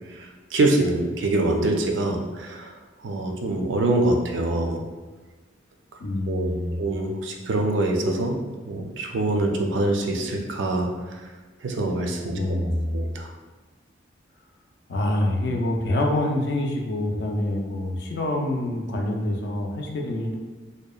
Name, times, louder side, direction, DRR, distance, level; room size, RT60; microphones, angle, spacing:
voice 1, 0.2-2.7 3.0-4.8 6.3-8.4 8.7-10.9 11.6-12.3 12.9-13.3, right 2 dB, 80° right, 2 dB, 0.4 m, -24 dB
voice 2, 6.0-6.9 12.3-13.0 14.9-20.4, left 1 dB, 60° left, 0 dB, 0.4 m, -26 dB
2.7 x 2.1 x 2.3 m, 1.3 s
head